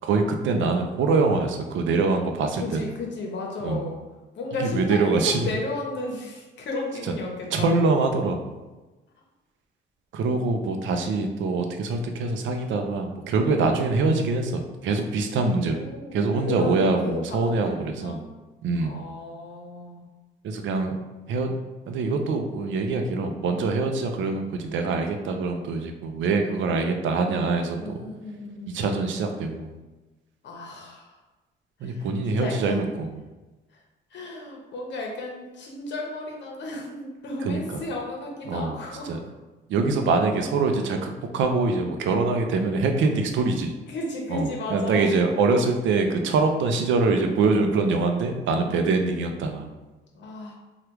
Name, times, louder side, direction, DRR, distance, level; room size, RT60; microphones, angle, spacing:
voice 1, 0.0-2.9 3.6-3.8 4.6-5.5 7.0-7.1 7.5-8.5 10.1-18.2 18.6-19.0 20.4-21.0 21.3-21.5 21.9-28.0 28.7-29.7 31.8-33.1 37.4-37.8 38.5-39.2 39.7-43.7 44.3-49.7, right 3 dB, 75° right, 5 dB, 0.5 m, -24 dB
voice 2, 2.6-4.0 4.3-7.8 13.6-13.8 15.3-18.3 18.8-20.1 26.4-27.0 27.8-28.8 30.4-31.2 31.8-32.9 33.7-33.8 34.1-39.1 43.9-45.1 48.6-49.2 50.1-50.5, left 2 dB, 65° left, 0 dB, 0.8 m, -34 dB
3.3 x 2.3 x 2.9 m, 1.2 s
cardioid pair, 90°, 20 cm